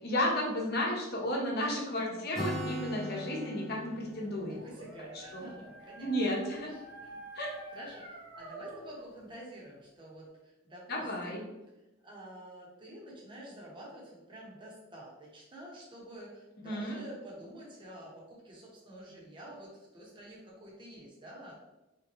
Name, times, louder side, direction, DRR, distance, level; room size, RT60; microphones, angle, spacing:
voice 1, 0.0-4.6 5.3-5.5 6.0-6.7 7.4-7.5 10.9-11.4 16.6-17.0, left 1 dB, 55° left, -2 dB, 0.9 m, -33 dB
Acoustic guitar, 2.3-6.1, equal, ahead, 0.7 m, -41 dB
Dog, 4.1-9.2, right 1 dB, 75° right, 1.3 m, -49 dB
voice 2, 4.4-6.1 6.7-11.5 12.0-21.5, right 1 dB, 25° right, -4 dB, 1.0 m, -49 dB
3.6 x 3.0 x 2.9 m, 1.0 s
head